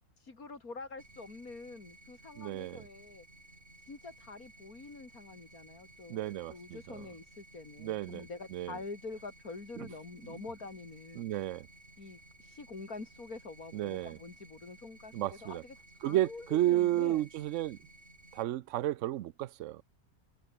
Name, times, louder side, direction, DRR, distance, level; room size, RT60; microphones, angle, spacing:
voice 1, 0.2-3.3 3.9-11.3 12.0-15.8 16.0-17.2, left 3 dB, 80° left, 4.1 m, -46 dB
sound 1, 1.0-18.4, right 2 dB, 45° right, 5.4 m, -57 dB
voice 2, 2.4-2.9 6.1-7.0 7.8-8.8 9.8-9.9 10.2-10.4 11.2-11.7 13.7-14.2 15.1-15.6 16.0-17.8 18.3-19.8, right 14 dB, 65° right, 0.9 m, -33 dB
omnidirectional pair, 1.5 m